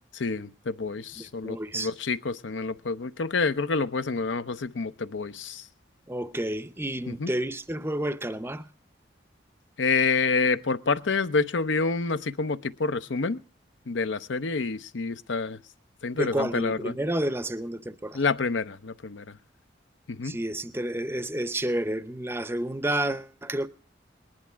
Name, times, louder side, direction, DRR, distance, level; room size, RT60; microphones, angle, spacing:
voice 1, 0.1-5.7 7.1-7.3 9.8-13.4 13.9-15.6 16.0-16.9 18.1-19.4 20.1-20.4, left 4 dB, 80° left, 0.7 m, -28 dB
voice 2, 1.2-1.9 6.1-8.7 16.1-18.2 20.2-23.7, right 1 dB, 10° right, 0.6 m, -30 dB
19.5 x 11.0 x 4.5 m
head